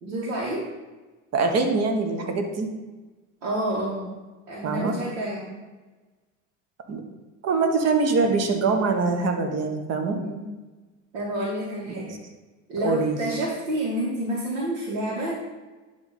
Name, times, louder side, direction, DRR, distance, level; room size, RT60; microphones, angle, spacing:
voice 1, 0.0-0.6 3.4-4.1 4.5-5.6 10.2-10.5 11.1-12.2 12.7-15.3, right 1 dB, 70° right, -6 dB, 2.1 m, -29 dB
voice 2, 1.3-2.7 4.6-4.9 6.9-7.0 7.4-10.2 12.8-13.2, right 4 dB, 40° right, 5 dB, 1.3 m, -23 dB
10.5 x 3.6 x 4.2 m, 1.2 s
hypercardioid pair, 80°, 39 cm